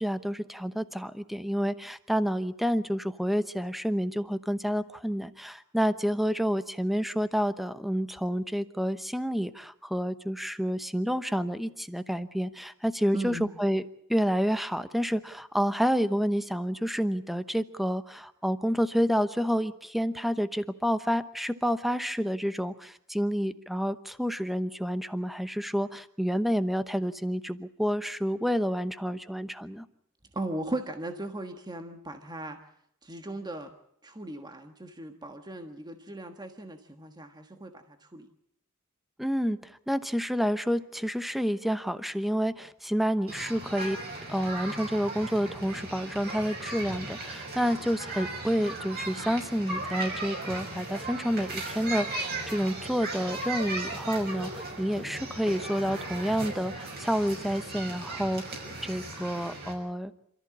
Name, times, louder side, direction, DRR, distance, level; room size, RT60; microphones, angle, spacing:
voice 1, 0.0-13.8 14.1-29.8 39.2-44.0 44.3-60.1, equal, ahead, 12 dB, 0.9 m, -29 dB
voice 2, 13.1-13.5 30.3-32.6 33.0-33.7 34.0-38.3, right 1 dB, 20° right, 6 dB, 1.4 m, -37 dB
sound 1, 43.3-59.7, right 2 dB, 45° right, 6.5 m, -37 dB
27.5 x 14.0 x 8.6 m, 0.73 s
head